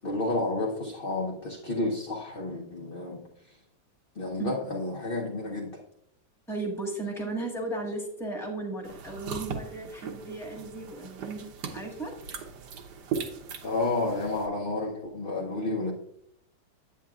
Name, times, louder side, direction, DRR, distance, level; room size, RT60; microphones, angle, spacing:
voice 1, 0.0-3.2 4.2-5.7 13.6-15.9, left 2 dB, 45° left, -2 dB, 0.7 m, -30 dB
voice 2, 6.5-12.1, right 2 dB, ahead, -1 dB, 1.2 m, -35 dB
sound 1, 8.8-14.5, right 6 dB, 65° right, 1.4 m, -39 dB
8.8 x 8.5 x 2.4 m, 0.73 s
omnidirectional pair, 2.1 m